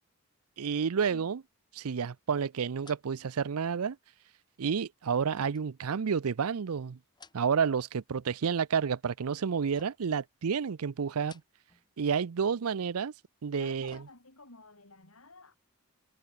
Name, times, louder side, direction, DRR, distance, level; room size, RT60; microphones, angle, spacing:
voice 1, 0.6-1.4 1.7-4.0 4.6-7.0 7.3-11.4 12.0-13.1 13.4-14.0, right 6 dB, 80° right, 0.5 m, -30 dB
sound 1, 1.0-1.5 1.8-1.9 2.8-3.9 5.3-6.5 7.0-7.8 8.1-8.7 9.7-10.2 11.1-11.9 12.2-12.3 13.4-14.6 15.0-15.1, left 4 dB, 20° left, 5.5 m, -59 dB
voice 2, 13.5-15.6, left 2 dB, 70° left, 5.8 m, -51 dB
head